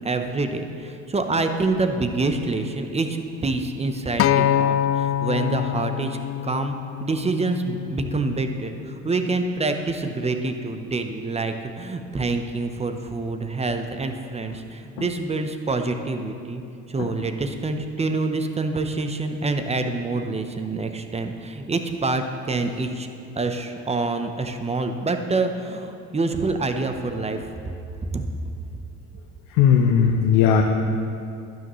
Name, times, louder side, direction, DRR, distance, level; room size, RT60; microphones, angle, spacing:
voice 1, 0.0-6.2 6.4-6.8 7.0-16.6 16.9-23.1 23.4-27.5 28.1-28.2, right 3 dB, 20° right, 6 dB, 0.8 m, -26 dB
Acoustic guitar, 4.2-8.5 9.3-9.4, left 10 dB, 40° left, 0.4 m, -25 dB
voice 2, 29.5-30.6, left 7 dB, 75° left, 2 dB, 0.8 m, -17 dB
12.0 x 9.9 x 3.1 m, 2.5 s
supercardioid pair, 85°, 34 cm